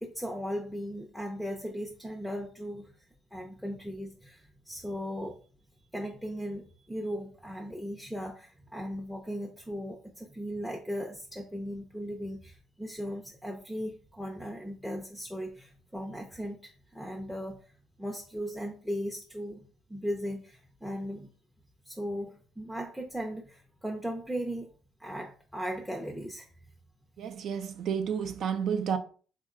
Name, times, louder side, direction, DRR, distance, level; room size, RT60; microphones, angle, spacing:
voice 1, 0.0-2.9 3.3-5.5 5.9-17.7 18.0-19.6 19.9-21.3 21.9-24.7 25.0-26.5, equal, ahead, 0.5 m, -37 dB
voice 2, 27.2-29.0, right 7 dB, 60° right, 0.5 m, -31 dB
3.7 x 2.1 x 3.7 m
cardioid pair, 95°, 0 cm